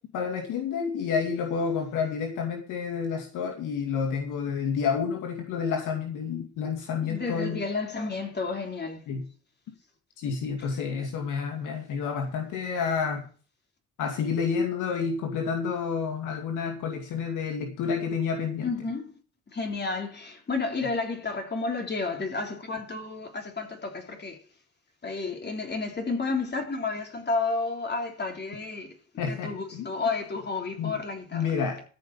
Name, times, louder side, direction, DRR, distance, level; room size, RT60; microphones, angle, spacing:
voice 1, 0.1-7.6 9.1-9.3 10.2-13.2 14.0-18.7 29.2-29.9 30.8-30.9 31.3-31.8, left 6 dB, 90° left, 2.4 m, -29 dB
voice 2, 7.0-9.0 18.6-19.1 19.5-24.4 25.0-31.4, left 3 dB, 35° left, 3.6 m, -31 dB
14.0 x 5.9 x 7.2 m
cardioid pair, 90°, 30 cm